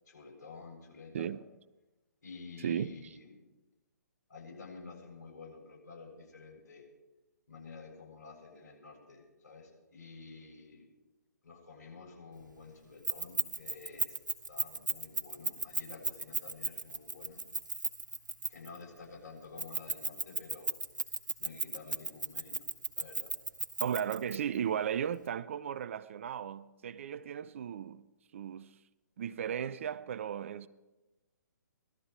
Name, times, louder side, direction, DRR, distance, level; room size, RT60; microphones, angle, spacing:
voice 1, 0.1-1.3 2.2-3.4 4.3-6.8 7.5-10.9 11.4-14.1 14.5-17.4 18.5-20.7 21.4-22.6 23.0-23.3, left 4 dB, 55° left, 7.1 m, -50 dB
voice 2, 2.6-2.9 23.8-28.1 28.3-28.8 29.2-30.7, right 9 dB, 45° right, 0.5 m, -35 dB
Keys jangling, 13.0-18.8 19.6-24.4, right 3 dB, 80° right, 1.5 m, -34 dB
18.5 x 13.0 x 4.7 m
figure-of-eight pair, 130°, 10 cm